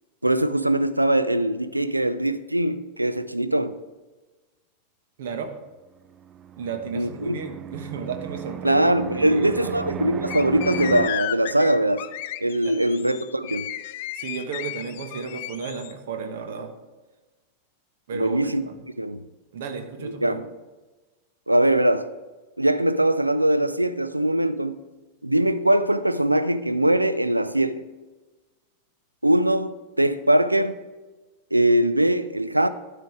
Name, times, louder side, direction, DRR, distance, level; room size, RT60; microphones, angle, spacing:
voice 1, 0.2-3.8 6.9-7.4 8.6-12.0 12.4-13.7 18.1-18.6 19.0-19.2 20.0-20.5 21.5-22.1 22.6-24.8 25.2-27.8 29.2-30.8 31.5-32.7, right 1 dB, 85° right, 0.4 m, -22 dB
voice 2, 5.2-5.5 6.6-8.9 9.2-9.8 12.6-12.7 14.1-16.7 18.1-18.8 19.5-20.4, right 6 dB, 60° right, 1.1 m, -33 dB
Fixed-wing aircraft airplane, 6.2-11.1, right 8 dB, 25° right, 0.4 m, -35 dB
sound 1, 10.3-15.9, left 14 dB, 50° left, 0.4 m, -34 dB
12.0 x 5.1 x 4.8 m
figure-of-eight pair, 90°, 0 cm